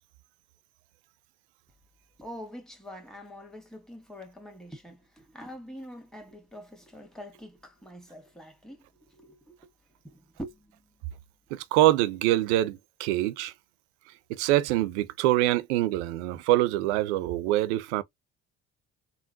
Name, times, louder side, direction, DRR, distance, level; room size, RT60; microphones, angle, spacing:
voice 1, 2.2-9.7 10.0-10.9, equal, ahead, 1.5 m, -45 dB
voice 2, 11.5-13.5 14.3-18.0, right 15 dB, 90° right, 0.5 m, -25 dB
3.6 x 2.1 x 2.6 m
hypercardioid pair, 60°, 34 cm